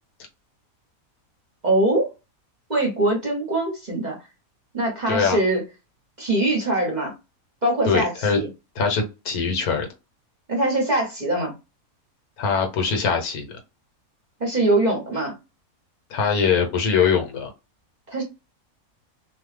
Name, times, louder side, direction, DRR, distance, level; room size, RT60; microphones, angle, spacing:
voice 1, 1.6-2.1 2.7-4.2 4.7-5.6 6.2-7.1 7.6-8.5 10.5-11.5 14.4-15.3 18.1-18.2, right 1 dB, 35° right, 0.9 m, -22 dB
voice 2, 5.1-5.4 7.9-8.4 8.8-9.9 12.4-13.6 16.1-17.5, left 5 dB, 80° left, 1.3 m, -22 dB
2.7 x 2.3 x 3.2 m
omnidirectional pair, 1.5 m